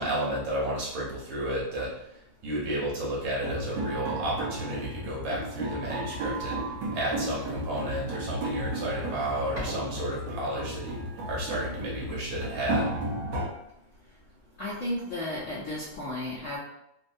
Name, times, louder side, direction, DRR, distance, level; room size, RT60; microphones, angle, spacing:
voice 1, 0.0-6.6 6.9-11.0 11.3-12.9, right 1 dB, 85° right, -5 dB, 1.9 m, -32 dB
sound 1, 3.3-13.5, right 1 dB, 70° right, 1.4 m, -34 dB
sound 2, 6.7-12.2, left 1 dB, 30° right, 1.3 m, -46 dB
voice 2, 14.6-16.6, left 1 dB, 60° left, -7 dB, 0.8 m, -33 dB
4.1 x 2.3 x 2.6 m, 0.80 s
omnidirectional pair, 2.1 m